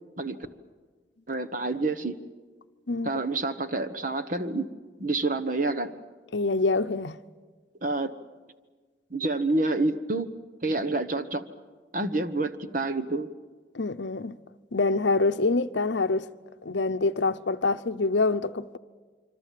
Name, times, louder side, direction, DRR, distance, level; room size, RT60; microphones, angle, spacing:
voice 1, 1.3-2.2 3.0-4.7 5.0-5.9 7.8-8.2 9.1-10.3 10.6-11.4 11.9-13.3, right 2 dB, 45° right, 1.2 m, -28 dB
voice 2, 6.3-7.2 13.7-14.4 14.7-16.3 16.6-18.8, left 3 dB, 75° left, 0.7 m, -25 dB
26.5 x 25.0 x 7.6 m
head